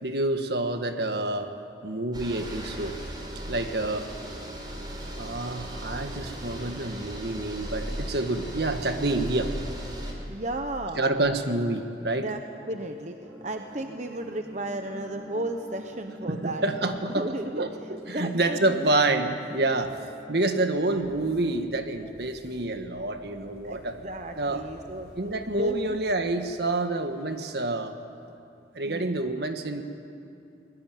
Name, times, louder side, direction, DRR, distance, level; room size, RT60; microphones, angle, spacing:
voice 1, 0.0-1.5 1.8-3.0 3.5-4.1 5.2-9.5 11.0-12.3 16.3-20.0 20.3-24.0 24.4-24.6 25.2-27.9 28.7-29.8, right 2 dB, 65° right, 7 dB, 1.6 m, -28 dB
sound 1, 2.1-10.1, equal, 25° right, 4.2 m, -37 dB
voice 2, 10.3-11.0 12.2-12.4 12.7-17.6 18.1-18.9 23.6-26.0 28.3-28.4 28.9-29.2, right 1 dB, 40° right, 5 dB, 1.1 m, -34 dB
sound 2, 13.2-21.4, equal, ahead, 3.5 m, -46 dB
sound 3, 20.9-27.1, equal, 60° left, 4.4 m, -53 dB
23.0 x 20.5 x 9.3 m, 2.6 s
head